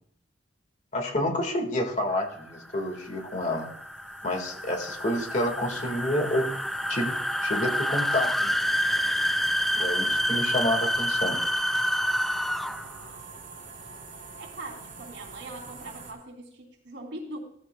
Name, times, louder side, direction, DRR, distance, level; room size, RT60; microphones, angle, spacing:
voice 1, 0.9-3.7 4.2-6.5 6.9-7.1 7.4-8.6 9.8-11.4, left 1 dB, 40° left, 3 dB, 1.9 m, -29 dB
sound 1, 1.7-16.1, right 4 dB, 45° right, 4.1 m, -45 dB
sound 2, 2.3-13.0, equal, ahead, 0.3 m, -28 dB
voice 2, 9.8-10.3 14.4-17.4, right 1 dB, 80° right, 0 dB, 3.3 m, -42 dB
16.0 x 14.0 x 2.3 m, 0.66 s
head